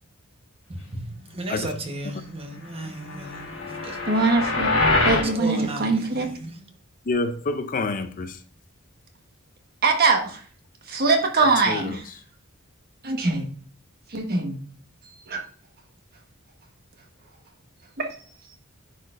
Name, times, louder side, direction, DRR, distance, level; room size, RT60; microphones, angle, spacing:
voice 1, 0.7-4.0 5.4-6.5, right 1 dB, 25° right, 1.1 m, -35 dB
sound 1, 3.1-5.3, left 2 dB, 70° left, 1.6 m, -24 dB
voice 2, 4.1-4.7 5.0-6.3 9.8-10.4 10.9-12.0 13.0-13.5 14.1-14.6 15.3-15.4 18.0-18.2, right 3 dB, 45° right, 1.3 m, -22 dB
voice 3, 7.1-8.4 11.4-11.9, left 3 dB, 40° left, 0.5 m, -27 dB
10.0 x 4.2 x 2.5 m
head